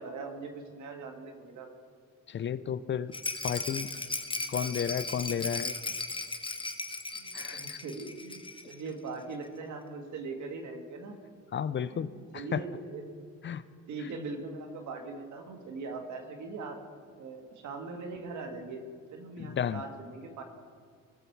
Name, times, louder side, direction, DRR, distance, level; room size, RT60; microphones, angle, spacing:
voice 1, 0.0-1.7 7.1-11.2 11.9-13.2 13.9-16.8 17.2-18.8 19.1-20.4, right 3 dB, 75° right, 5 dB, 1.7 m, -41 dB
voice 2, 2.3-3.1 3.4-3.9 4.5-5.7 7.3-7.8 11.5-12.6 13.4-13.6 19.4-19.8, left 8 dB, 40° left, 16 dB, 0.4 m, -32 dB
Rattle, 3.1-8.8 9.1-9.2 9.4-9.5, left 3 dB, 15° left, 0.8 m, -36 dB
20.0 x 6.9 x 4.6 m, 2.2 s
cardioid pair, 90°, 30 cm